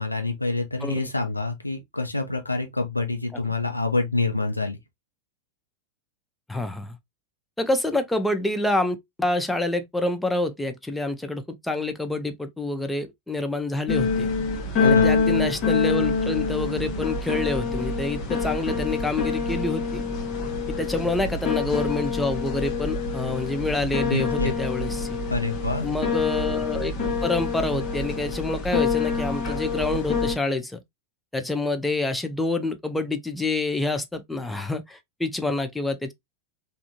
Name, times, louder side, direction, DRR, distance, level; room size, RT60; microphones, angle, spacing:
voice 1, 0.0-4.8 14.8-15.1 24.0-24.5 25.3-25.9, left 3 dB, 85° left, 0.7 m, -26 dB
voice 2, 6.5-7.0 7.6-14.3 14.8-20.0 20.7-25.2 25.8-26.9 27.2-30.8 31.3-36.1, left 2 dB, 5° left, 0.5 m, -27 dB
sound 1, 13.9-30.3, left 4 dB, 35° left, 1.0 m, -26 dB
3.5 x 2.5 x 2.6 m
figure-of-eight pair, 90°, 0 cm